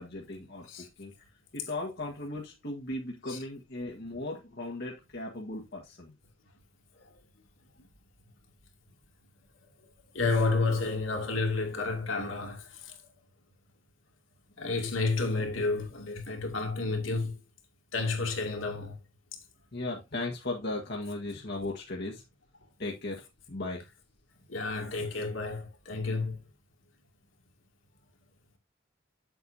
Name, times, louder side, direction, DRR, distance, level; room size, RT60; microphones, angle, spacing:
voice 1, 0.0-6.1 19.7-22.2 22.8-23.8, left 2 dB, 55° left, 1.6 m, -37 dB
voice 2, 10.1-13.0 14.6-17.3 17.9-19.0 24.5-26.4, left 3 dB, 80° left, 2.5 m, -30 dB
8.4 x 7.8 x 2.7 m
head